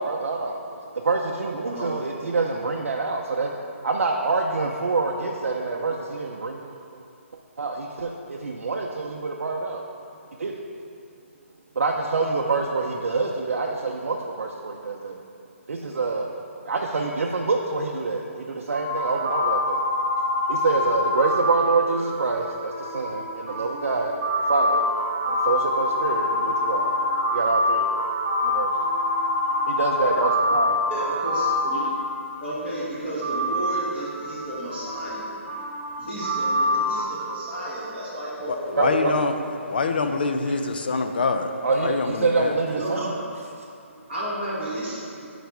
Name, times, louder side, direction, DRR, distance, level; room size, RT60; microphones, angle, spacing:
voice 1, 0.0-3.5 3.8-7.0 7.6-9.8 10.4-10.5 11.8-15.2 15.7-16.4 16.7-19.8 20.5-24.2 24.5-24.8 25.3-27.0 27.3-27.9 28.4-28.7 29.7-30.8 38.8-39.1 40.5-40.6 41.6-43.1, right 3 dB, 75° right, -1 dB, 0.6 m, -26 dB
sound 1, 18.7-32.5 33.2-37.0, left 1 dB, 25° right, 1.3 m, -25 dB
voice 2, 30.9-31.8 32.4-35.3 36.0-39.1 42.7-43.2 43.9-45.3, right 1 dB, 5° left, -17 dB, 1.0 m, -32 dB
voice 3, 38.5-39.3 39.7-41.5 41.8-42.5, left 4 dB, 45° left, 7 dB, 0.4 m, -25 dB
9.0 x 4.1 x 4.7 m, 2.5 s
hypercardioid pair, 180°, 7 cm